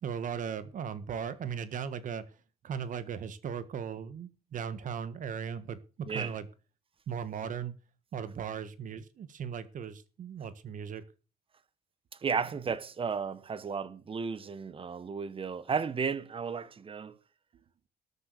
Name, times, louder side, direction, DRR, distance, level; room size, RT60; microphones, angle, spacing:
voice 1, 0.0-2.2 2.6-6.4 7.1-7.7 8.1-11.0, right 7 dB, 50° right, 1.6 m, -37 dB
voice 2, 12.2-17.2, right 6 dB, 30° right, 1.5 m, -34 dB
13.0 x 8.4 x 6.8 m
cardioid pair, 110°, 17 cm